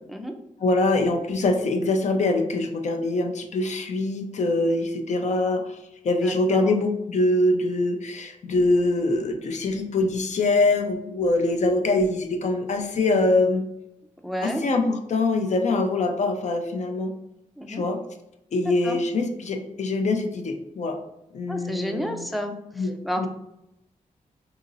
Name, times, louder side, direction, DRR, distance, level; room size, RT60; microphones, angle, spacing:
voice 1, 0.6-5.8 6.0-13.6 14.4-17.1 17.7-18.0 18.5-21.0 21.3-22.2 22.8-22.9 23.2-23.3, left 2 dB, 55° left, 5 dB, 0.5 m, -24 dB
voice 2, 6.2-6.7 14.2-14.6 17.6-17.8 18.6-19.0 21.5-23.3, equal, ahead, 5 dB, 0.4 m, -31 dB
3.8 x 2.8 x 2.6 m, 0.84 s
wide cardioid pair, 105°, 14 cm